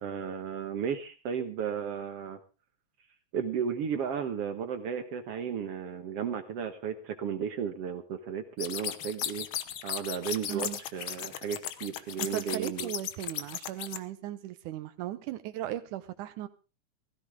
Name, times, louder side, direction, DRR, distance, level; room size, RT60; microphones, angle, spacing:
voice 1, 0.0-2.4 3.3-9.5 9.8-12.9, right 7 dB, 60° right, 8 dB, 2.0 m, -34 dB
sound 1, 8.6-14.0, left 10 dB, 70° left, 1.2 m, -36 dB
voice 2, 10.5-10.8 12.2-16.5, right 13 dB, 85° right, 9 dB, 2.4 m, -37 dB
16.5 x 15.5 x 3.6 m, 0.32 s
omnidirectional pair, 3.5 m